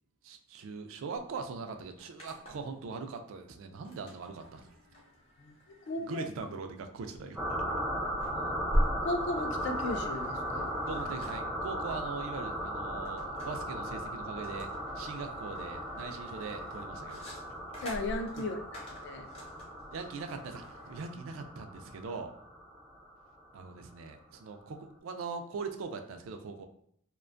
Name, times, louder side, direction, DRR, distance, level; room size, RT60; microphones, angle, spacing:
voice 1, 0.2-4.7 6.0-7.4 10.8-14.7 15.0-17.3 19.9-22.3 23.5-26.7, right 4 dB, 70° right, 6 dB, 0.3 m, -41 dB
sound 1, 1.2-1.3 1.5-2.8 3.8-21.0, equal, 30° left, 0.7 m, -41 dB
voice 2, 5.9-6.2 8.3-8.6 9.0-10.7 17.8-19.3, left 2 dB, 55° left, 5 dB, 0.3 m, -36 dB
sound 2, 7.3-23.6, equal, 5° right, 0.4 m, -37 dB
2.4 x 2.2 x 2.4 m, 0.68 s
head